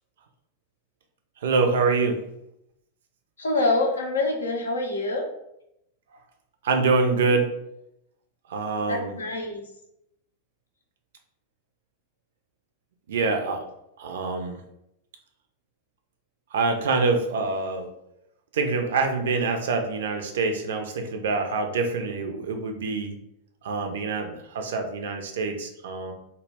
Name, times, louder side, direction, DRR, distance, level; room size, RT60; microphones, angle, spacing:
voice 1, 1.4-2.2 6.6-7.5 8.5-9.1 13.1-13.6 14.0-14.6 16.5-17.9 18.5-23.2 23.6-26.1, right 4 dB, 60° right, 5 dB, 0.4 m, -25 dB
voice 2, 3.4-5.3 8.9-9.6, left 2 dB, 70° left, 2 dB, 0.4 m, -25 dB
2.1 x 2.1 x 3.2 m, 0.80 s
figure-of-eight pair, 90°, 0 cm